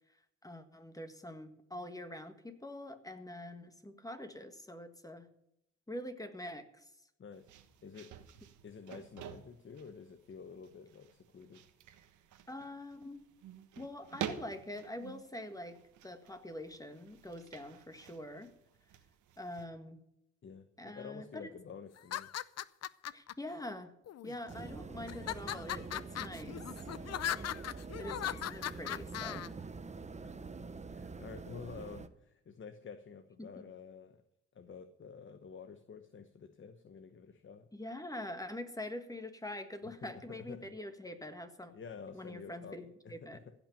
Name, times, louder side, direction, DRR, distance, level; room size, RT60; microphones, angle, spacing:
voice 1, 0.4-5.3 5.9-6.9 12.5-13.2 13.8-15.8 16.0-18.5 19.4-20.0 20.8-21.5 23.1-23.9 24.2-26.6 28.0-29.5 33.4-33.6 37.7-41.7 42.1-43.4, left 1 dB, 10° left, 8 dB, 1.6 m, -45 dB
voice 2, 7.2-7.5 7.8-8.1 8.6-11.6 20.4-22.3 27.9-28.4 30.2-30.4 30.8-34.2 34.5-37.7 39.8-40.7 41.7-43.5, left 6 dB, 45° left, 10 dB, 1.0 m, -50 dB
sound 1, 7.3-19.7, right 9 dB, 90° right, 1.4 m, -49 dB
sound 2, 22.0-23.3 24.1-24.6 25.1-29.5, left 11 dB, 60° left, 0.6 m, -39 dB
sound 3, 24.5-32.1, right 4 dB, 25° right, 0.9 m, -46 dB
16.0 x 6.0 x 8.8 m, 0.80 s
cardioid pair, 90°, 29 cm